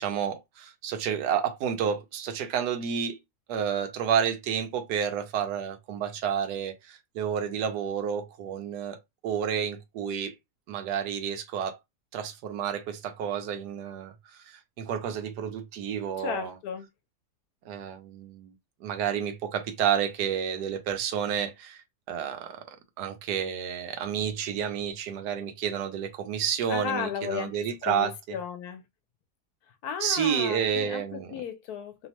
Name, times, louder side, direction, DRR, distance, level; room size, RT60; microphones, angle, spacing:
voice 1, 0.0-3.2 3.5-9.0 9.2-10.3 10.7-11.8 12.1-14.1 14.4-16.5 17.7-18.5 18.8-22.6 23.0-28.4 30.0-31.4, right 8 dB, 85° right, 1.2 m, -30 dB
voice 2, 16.2-16.9 26.7-28.8 29.8-32.1, left 7 dB, 75° left, 1.1 m, -35 dB
3.1 x 2.1 x 2.9 m
omnidirectional pair, 1.7 m